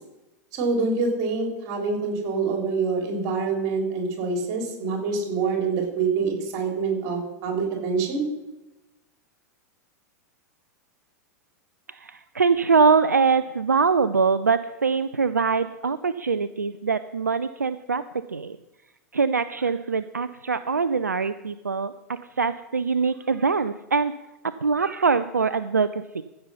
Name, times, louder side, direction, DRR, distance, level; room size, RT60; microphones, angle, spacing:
voice 1, 0.5-8.2, right 4 dB, 45° right, 1 dB, 4.0 m, -26 dB
voice 2, 11.9-18.6 19.1-24.1 24.4-26.2, right 5 dB, 85° right, 14 dB, 0.4 m, -23 dB
15.0 x 6.9 x 5.7 m, 0.99 s
figure-of-eight pair, 90°, 9 cm